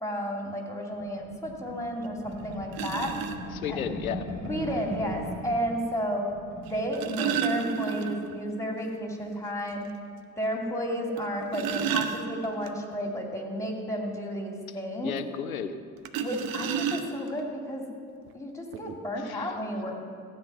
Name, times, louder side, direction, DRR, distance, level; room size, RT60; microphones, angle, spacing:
voice 1, 0.0-3.1 3.7-3.8 4.5-6.2 6.7-9.8 10.4-15.1 16.2-17.9 18.3-19.9, equal, 5° left, 1 dB, 2.6 m, -32 dB
sound 1, 1.0-5.5 5.9-6.0 6.2-6.8, equal, 85° right, 2.6 m, -38 dB
sound 2, 2.0-2.1 2.7-3.4 4.8-4.9 6.7-8.4 8.7-8.8 9.2-9.3 9.8-9.9 11.2-12.7 16.0-17.4 18.3-18.4 18.7-18.9, right 8 dB, 55° right, 0.9 m, -31 dB
voice 2, 3.5-4.3 15.0-15.8 19.2-19.5, left 8 dB, 85° left, 11 dB, 0.6 m, -33 dB
15.0 x 8.3 x 5.8 m, 2.2 s
figure-of-eight pair, 45°, 41 cm